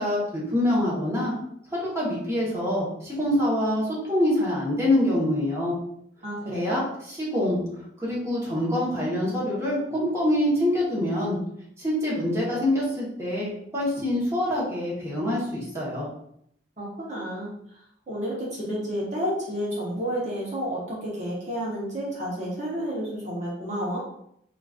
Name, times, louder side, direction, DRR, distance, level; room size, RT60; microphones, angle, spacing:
voice 1, 0.0-1.3 1.7-5.7 6.5-7.6 8.0-11.4 11.8-16.1, left 1 dB, 15° right, -7 dB, 1.1 m, -25 dB
voice 2, 6.2-6.8 16.8-17.5 18.1-24.0, equal, 40° right, -6 dB, 0.9 m, -30 dB
4.9 x 2.5 x 2.4 m, 0.72 s
head